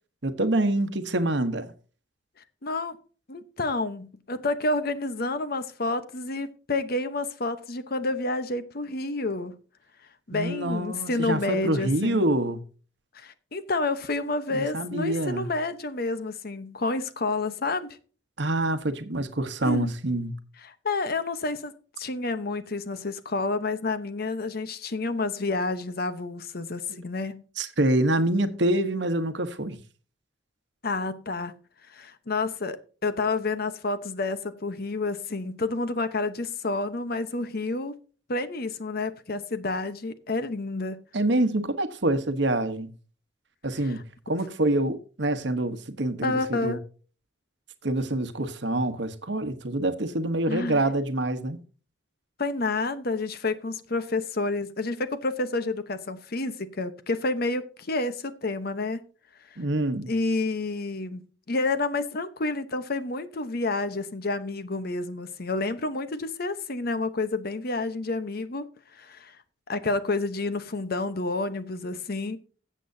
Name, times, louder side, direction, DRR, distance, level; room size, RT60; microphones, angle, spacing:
voice 1, 0.2-1.7 10.3-12.6 14.5-15.5 18.4-20.4 26.9-27.0 27.6-29.8 41.1-42.9 43.6-44.0 44.3-46.8 47.8-51.6 59.6-60.1, right 1 dB, 60° right, 1.1 m, -26 dB
voice 2, 2.6-3.0 3.3-9.6 10.3-12.3 13.1-18.0 19.6-19.9 20.6-21.7 22.0-27.4 30.8-31.5 31.9-37.9 38.3-41.0 46.2-46.8 50.5-50.8 52.4-59.0 60.1-68.7 68.9-69.4 69.7-72.4, left 3 dB, 50° left, 0.9 m, -29 dB
17.0 x 7.6 x 2.7 m
head